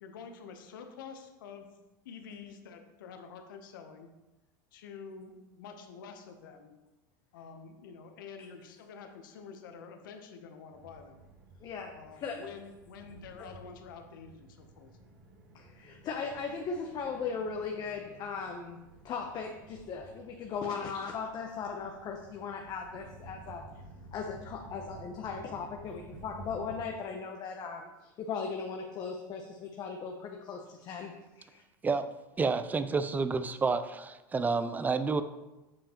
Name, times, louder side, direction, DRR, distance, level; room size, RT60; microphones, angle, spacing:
voice 1, 0.0-1.7 2.0-4.1 4.7-6.7 7.3-11.2 11.9-14.9, left 6 dB, 85° left, 5 dB, 0.7 m, -48 dB
sound 1, 10.7-26.8, right 3 dB, 75° right, 1.9 m, -53 dB
voice 2, 11.6-12.4 15.5-18.8 19.0-23.6 24.1-31.6, left 5 dB, 40° left, 2 dB, 0.7 m, -38 dB
voice 3, 32.4-35.2, right 4 dB, 15° right, 12 dB, 0.4 m, -29 dB
7.2 x 5.2 x 2.9 m, 1.1 s
supercardioid pair, 110°, 11 cm